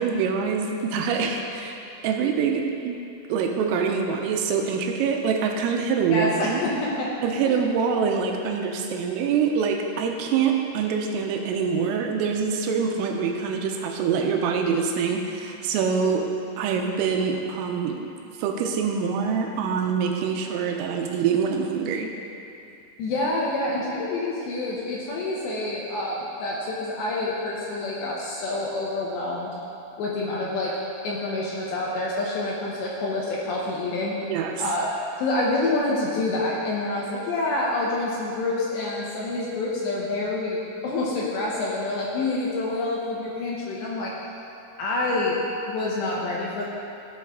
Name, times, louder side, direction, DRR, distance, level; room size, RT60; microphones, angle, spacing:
voice 1, 0.0-1.8 2.0-3.0 3.3-6.6 7.2-16.3 16.6-18.1 18.4-22.1 34.3-34.6, right 6 dB, 85° right, 2 dB, 3.3 m, -25 dB
voice 2, 6.1-7.1 7.4-7.6 23.0-29.5 30.0-30.7 31.0-34.2 34.6-34.9 35.2-44.1 44.8-45.4 45.7-46.7, left 2 dB, 75° left, -4 dB, 2.8 m, -27 dB
15.0 x 7.3 x 3.7 m, 2.7 s
omnidirectional pair, 6.0 m